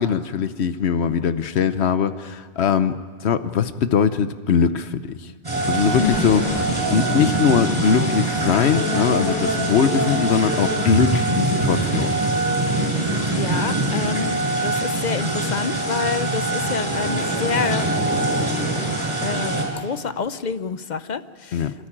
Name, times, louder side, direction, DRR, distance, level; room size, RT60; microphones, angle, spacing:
voice 1, 0.0-5.3 5.7-12.1 21.5-21.7, left 7 dB, 85° left, 12 dB, 1.1 m, -21 dB
sound 1, 5.4-19.6, right 2 dB, 20° right, 5.9 m, -23 dB
sound 2, 5.9-11.3, equal, 10° left, 4.6 m, -29 dB
voice 2, 13.3-17.9 19.2-21.7, left 5 dB, 50° left, 12 dB, 0.8 m, -28 dB
27.5 x 13.0 x 8.8 m, 1.5 s
omnidirectional pair, 1.1 m